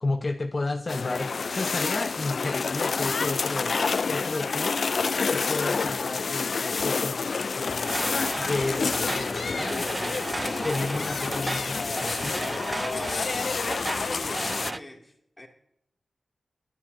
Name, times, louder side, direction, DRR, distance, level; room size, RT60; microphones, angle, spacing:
voice 1, 0.0-3.8 4.1-4.8 5.3-8.0 8.4-9.9 10.6-12.4, left 2 dB, 40° left, 0.8 m, -32 dB
sound 1, 0.9-14.7, left 4 dB, 60° left, 0.4 m, -28 dB
sound 2, 7.8-14.8, right 2 dB, 25° right, 0.4 m, -34 dB
voice 2, 13.9-15.5, left 1 dB, 20° left, 2.4 m, -44 dB
22.0 x 11.0 x 2.7 m
wide cardioid pair, 105°, 0 cm